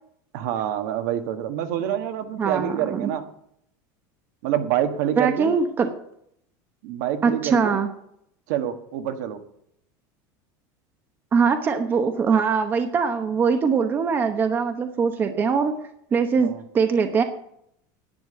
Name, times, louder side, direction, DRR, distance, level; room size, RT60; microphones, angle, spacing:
voice 1, 0.3-3.3 4.4-5.6 6.8-7.8 8.5-9.4 16.4-16.6, right 11 dB, 65° right, 7 dB, 1.5 m, -26 dB
voice 2, 2.4-3.1 5.2-5.9 7.2-7.9 11.3-15.8 16.1-17.2, right 5 dB, 20° right, 7 dB, 0.9 m, -22 dB
10.5 x 8.8 x 7.5 m, 0.72 s
cardioid pair, 165°, 10 cm